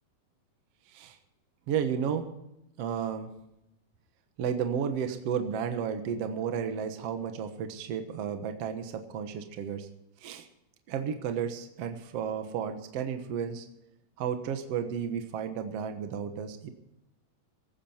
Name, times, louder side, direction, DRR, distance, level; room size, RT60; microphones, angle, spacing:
voice 1, 1.7-2.3 2.8-3.3 4.4-9.9 10.2-10.5 10.9-13.7 14.2-16.7, right 7 dB, 60° right, 6 dB, 2.1 m, -32 dB
17.0 x 14.5 x 4.4 m, 0.85 s
omnidirectional pair, 3.6 m